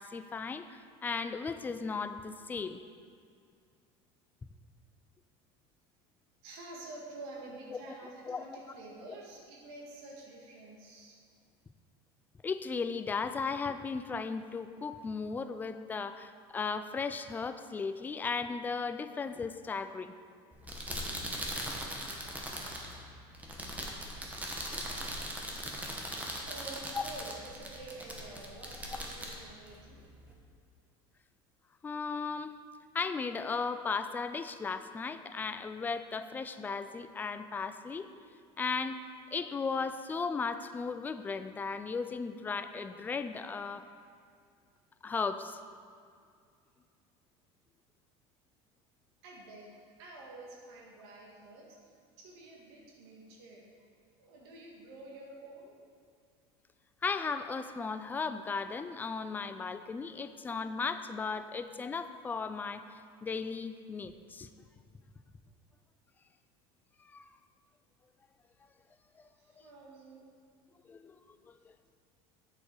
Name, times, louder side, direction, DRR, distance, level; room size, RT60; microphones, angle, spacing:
voice 1, 0.0-2.8 8.2-8.4 12.4-20.1 31.8-32.5 32.9-38.1 38.6-39.0 39.3-43.9 45.0-45.6 57.0-62.8 63.2-64.5 67.0-67.2 70.9-71.4, left 5 dB, 15° left, 10 dB, 0.3 m, -36 dB
voice 2, 6.4-11.2 26.5-30.1 49.2-53.9 54.2-55.8 69.2-70.3, right 2 dB, 80° right, -2 dB, 1.7 m, -49 dB
sound 1, 20.5-30.3, right 1 dB, 10° right, 1.1 m, -40 dB
7.6 x 6.6 x 4.6 m, 2.3 s
supercardioid pair, 120°, 13 cm